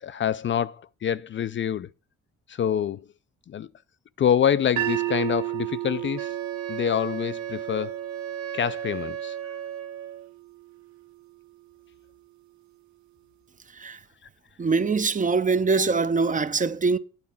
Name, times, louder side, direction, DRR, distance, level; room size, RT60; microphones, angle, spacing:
voice 1, 0.0-1.9 2.5-3.0 3.5-3.7 4.2-6.3 6.7-8.0 8.5-9.4, left 9 dB, 40° left, 0.4 m, -26 dB
sound 1, 4.8-10.9, right 15 dB, 70° right, 0.8 m, -34 dB
Wind instrument woodwind instrument, 6.2-10.3, right 9 dB, 50° right, 1.2 m, -35 dB
voice 2, 14.6-17.0, right 4 dB, 25° right, 0.7 m, -23 dB
9.6 x 4.2 x 7.1 m
cardioid pair, 90°, 30 cm